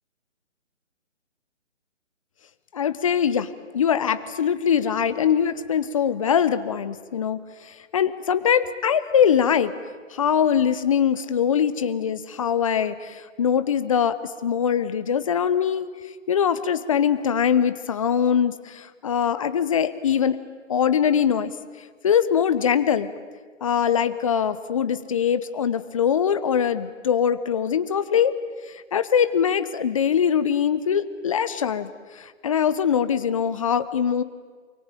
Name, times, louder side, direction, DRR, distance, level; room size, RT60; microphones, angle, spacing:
voice 1, 2.7-9.7 10.1-14.1 14.4-15.9 16.3-20.4 20.7-21.5 22.0-23.1 23.6-28.3 28.7-34.2, left 8 dB, 25° left, 12 dB, 0.9 m, -22 dB
27.5 x 23.5 x 9.1 m, 1.5 s
hypercardioid pair, 160°, 38 cm